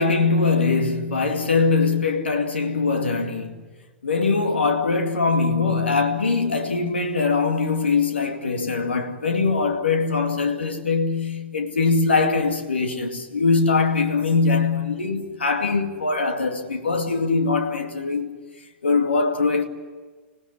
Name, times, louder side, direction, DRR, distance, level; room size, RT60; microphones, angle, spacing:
voice 1, 0.0-3.6 4.0-18.4 18.8-19.6, left 4 dB, 80° left, 2.3 m, -22 dB
25.5 x 18.0 x 9.7 m
figure-of-eight pair, 100°, 6 cm